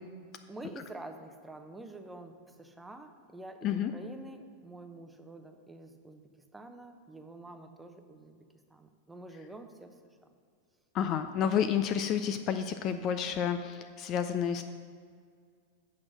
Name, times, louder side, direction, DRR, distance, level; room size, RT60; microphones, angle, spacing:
voice 1, 0.5-6.2 6.5-8.4 8.7-9.9, right 2 dB, 5° right, 6 dB, 0.7 m, -47 dB
voice 2, 10.9-14.6, left 8 dB, 35° left, 9 dB, 0.4 m, -30 dB
8.4 x 6.1 x 6.2 m, 2.1 s
figure-of-eight pair, 90°, 0 cm